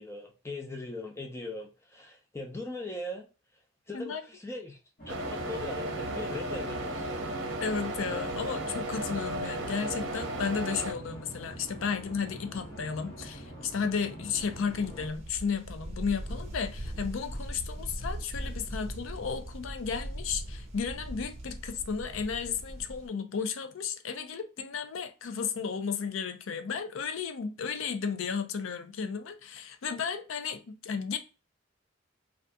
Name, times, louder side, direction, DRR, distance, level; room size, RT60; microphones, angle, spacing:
voice 1, 0.0-3.3 3.9-4.8 5.1-7.1, left 2 dB, 15° left, 0.5 m, -40 dB
sound 1, 5.0-15.1, right 1 dB, 45° left, 1.1 m, -45 dB
sound 2, 5.1-10.9, right 1 dB, 65° right, 0.7 m, -35 dB
voice 2, 7.6-31.2, left 6 dB, 75° left, 0.4 m, -33 dB
sound 3, 14.4-23.1, right 1 dB, 30° right, 0.9 m, -40 dB
2.6 x 2.4 x 3.5 m
head